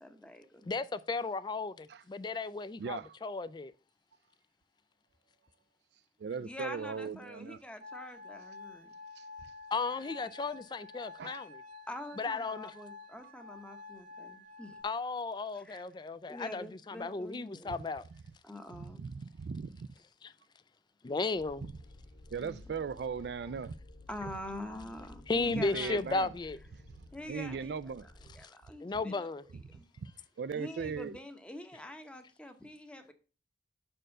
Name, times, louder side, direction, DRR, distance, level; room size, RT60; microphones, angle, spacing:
voice 1, 0.0-0.7 6.4-8.9 11.9-14.8 15.5-15.8 16.3-17.8 18.4-19.0 22.4-22.7 24.1-26.0 27.1-27.9 28.3-29.3 29.7-29.9 30.5-33.1, left 1 dB, 5° left, 0.8 m, -46 dB
voice 2, 0.7-3.7 9.7-11.6 12.2-12.7 14.8-18.0 20.2-20.3 21.0-21.7 24.7-24.8 25.3-26.6 28.8-29.4, left 3 dB, 25° left, 0.3 m, -35 dB
voice 3, 6.2-7.6 9.2-9.3 11.2-11.4 18.7-19.9 22.3-23.7 25.5-26.3 27.3-28.1 30.0-30.1 30.4-31.2, right 5 dB, 70° right, 0.4 m, -38 dB
sound 1, 7.8-14.8, left 3 dB, 45° right, 0.9 m, -49 dB
sound 2, 21.3-28.4, left 1 dB, 65° left, 1.4 m, -54 dB
6.1 x 4.4 x 6.5 m
head